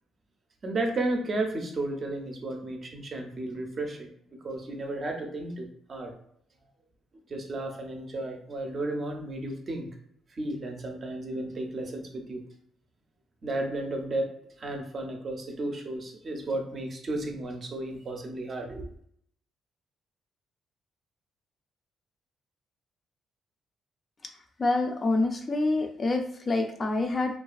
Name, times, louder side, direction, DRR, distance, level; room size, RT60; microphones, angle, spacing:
voice 1, 0.6-4.1 4.4-6.1 7.3-9.9 10.3-12.4 13.4-14.3 14.6-18.9, right 2 dB, 45° right, 3 dB, 0.5 m, -33 dB
voice 2, 24.6-27.4, left 2 dB, 35° left, 4 dB, 0.4 m, -26 dB
2.3 x 2.3 x 2.4 m, 0.67 s
cardioid pair, 90°, 0 cm